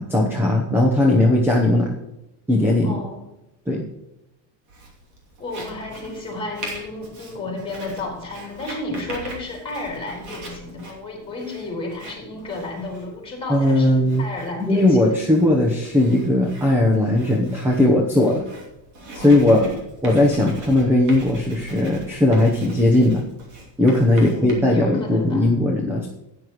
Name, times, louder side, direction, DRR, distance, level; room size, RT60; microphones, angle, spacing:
voice 1, 0.0-2.0 2.5-3.0 3.7-3.8 13.5-14.3 14.7-18.4 19.1-23.2 23.8-26.1, left 1 dB, 5° right, 0 dB, 0.9 m, -18 dB
voice 2, 2.8-3.2 5.4-15.2 19.2-19.6 24.1-25.5, left 2 dB, 15° left, -2 dB, 4.1 m, -32 dB
Writing, 4.7-24.5, right 2 dB, 45° right, 2.8 m, -41 dB
15.0 x 9.7 x 3.1 m, 0.91 s
cardioid pair, 180°, 42 cm